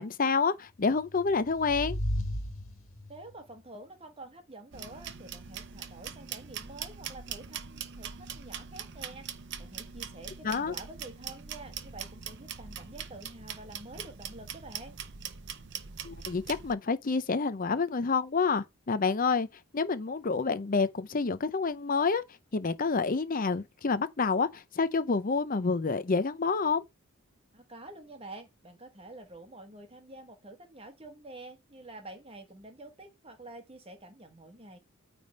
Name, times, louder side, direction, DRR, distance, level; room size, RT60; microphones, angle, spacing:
voice 1, 0.0-2.0 10.4-10.7 16.0-19.5 19.7-22.2 22.5-26.8, left 4 dB, 40° left, 0.5 m, -28 dB
sound 1, 1.0-3.3, left 1 dB, 65° left, 1.9 m, -35 dB
voice 2, 3.1-15.0 27.5-34.8, right 2 dB, 25° right, 1.1 m, -48 dB
sound 2, 4.7-16.7, right 8 dB, 50° right, 0.7 m, -42 dB
9.2 x 3.4 x 5.3 m
head